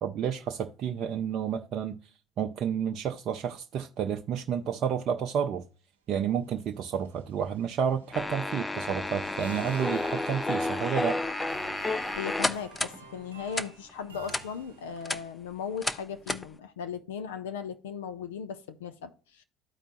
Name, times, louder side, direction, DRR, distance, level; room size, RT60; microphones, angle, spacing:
voice 1, 0.0-2.0 2.4-5.6 6.1-11.2, right 8 dB, 50° right, 0.6 m, -30 dB
sound 1, 6.2-15.1, right 5 dB, 85° right, 0.8 m, -50 dB
sound 2, 8.1-13.0 13.5-13.7 14.3-14.4 14.9-15.2 15.8-16.0 16.3-16.4, left 2 dB, 15° left, 0.6 m, -31 dB
voice 2, 12.2-19.4, left 7 dB, 75° left, 0.5 m, -37 dB
13.5 x 4.5 x 2.5 m
figure-of-eight pair, 60°, 0 cm